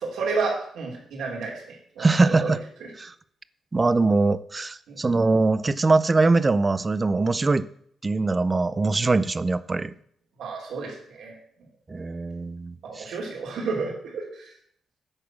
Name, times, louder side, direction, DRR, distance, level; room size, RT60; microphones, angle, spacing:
voice 1, 0.0-2.5 2.8-2.9 4.9-5.0 10.4-11.4 12.8-14.5, right 4 dB, 80° right, -1 dB, 2.9 m, -31 dB
voice 2, 2.0-2.6 3.0-3.1 3.7-7.7 8.0-9.9 11.9-13.1, right 3 dB, 30° right, 16 dB, 0.5 m, -22 dB
10.5 x 4.2 x 7.2 m, 0.65 s
cardioid pair, 75°, 0 cm